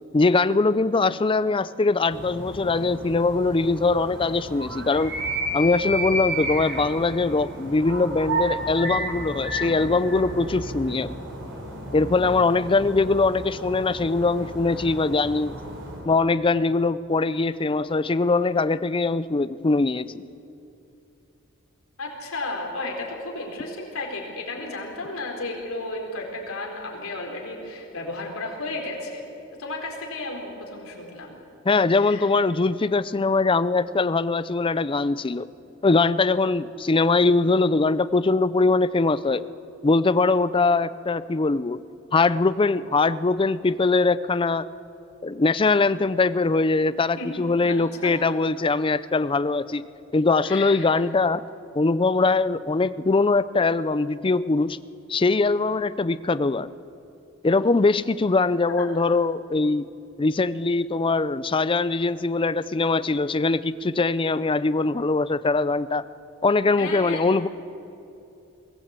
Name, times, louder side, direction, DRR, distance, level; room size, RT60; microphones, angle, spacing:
voice 1, 0.1-5.1 5.5-11.2 11.9-15.6 16.0-20.2 31.6-35.5 35.8-39.5 39.8-41.8 42.1-44.6 45.2-49.9 50.1-51.4 51.7-54.8 55.1-56.7 57.4-59.9 60.2-66.1 66.4-67.5, left 3 dB, 25° left, 16 dB, 0.5 m, -22 dB
sound 1, 2.1-16.1, right 1 dB, 60° right, 3.9 m, -32 dB
voice 2, 22.0-29.2 29.6-31.4 31.9-32.3 47.2-48.3 50.4-50.8 51.7-51.8 58.8-58.9 66.8-67.3, left 2 dB, 80° left, 0 dB, 4.1 m, -33 dB
22.5 x 16.5 x 8.2 m, 2.7 s
head